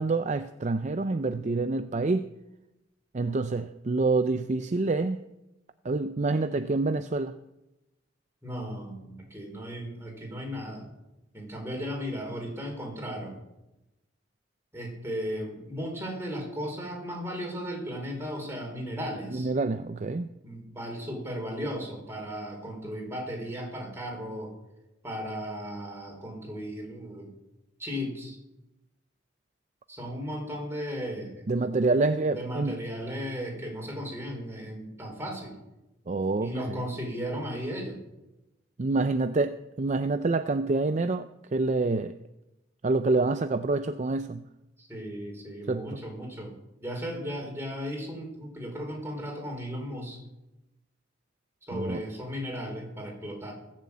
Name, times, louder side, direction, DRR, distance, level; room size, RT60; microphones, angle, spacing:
voice 1, 0.0-2.3 3.1-5.2 5.8-7.4 19.3-20.3 31.5-32.8 36.1-36.8 38.8-42.2 42.8-44.4 45.7-46.0 51.7-52.0, right 3 dB, 40° right, 10 dB, 0.5 m, -27 dB
voice 2, 8.4-10.8 11.3-13.4 14.7-19.5 20.4-24.5 25.0-27.3 27.8-28.4 29.9-31.4 32.3-35.6 36.4-38.0 44.8-46.5 46.8-50.2 51.6-53.5, equal, 15° right, 0 dB, 4.9 m, -36 dB
19.5 x 7.6 x 8.5 m, 0.96 s
head